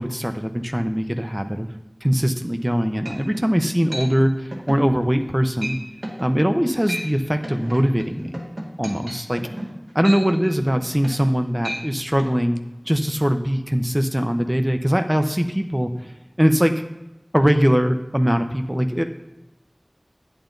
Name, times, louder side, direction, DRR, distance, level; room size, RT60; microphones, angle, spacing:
voice 1, 0.0-1.7 2.0-5.8 6.2-8.3 8.8-9.4 9.9-12.6 12.9-16.1 16.4-16.7 17.3-19.0, equal, 10° right, 6 dB, 0.8 m, -21 dB
sound 1, 2.6-2.7 3.1-3.5 3.9-4.1 4.5-4.8 5.2-5.3 5.6-5.8 6.0-6.3 6.7-7.1 7.4-11.3 11.6-11.8 12.2-12.3, right 1 dB, 70° right, 2.1 m, -33 dB
10.0 x 9.1 x 3.9 m, 0.96 s
wide cardioid pair, 40°, 0 cm